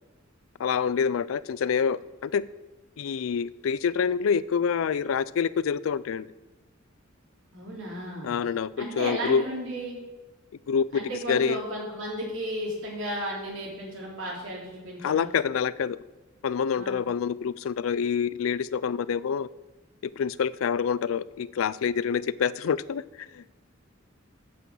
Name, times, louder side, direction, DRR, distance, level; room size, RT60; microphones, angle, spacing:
voice 1, 0.6-2.4 3.0-6.3 8.2-9.4 10.7-11.0 11.3-11.6 15.0-16.0 16.4-19.5 20.0-23.5, left 6 dB, 85° left, 19 dB, 0.4 m, -27 dB
voice 2, 7.5-8.3 8.8-10.0 10.9-15.3 16.7-17.0, right 1 dB, 65° right, -3 dB, 3.4 m, -34 dB
9.2 x 6.1 x 7.6 m, 1.2 s
head